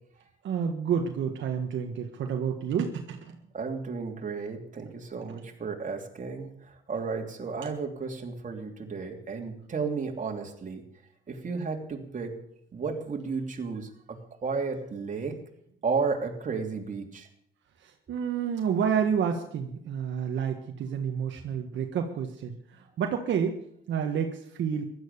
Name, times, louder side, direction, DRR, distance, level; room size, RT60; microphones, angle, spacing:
voice 1, 0.4-3.4 5.3-5.4 17.8-23.6 23.9-24.8, right 7 dB, 70° right, 3 dB, 1.5 m, -29 dB
voice 2, 3.5-6.5 6.9-10.8 11.3-12.3 12.7-13.9 14.4-15.4 15.8-17.3, right 4 dB, 40° right, 2 dB, 3.1 m, -33 dB
15.5 x 12.0 x 6.9 m, 0.70 s
cardioid pair, 90°, 20 cm